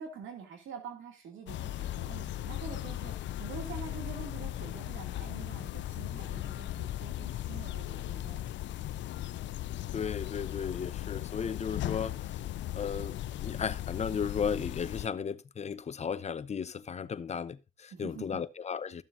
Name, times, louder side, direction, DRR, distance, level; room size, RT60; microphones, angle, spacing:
voice 1, 0.0-8.9 17.9-18.4, right 6 dB, 80° right, 2.4 m, -46 dB
sound 1, 1.5-15.1, left 13 dB, 65° left, 0.5 m, -37 dB
voice 2, 9.9-12.2 12.7-19.0, left 6 dB, 35° left, 0.7 m, -35 dB
14.0 x 7.3 x 2.6 m
cardioid pair, 90°, 20 cm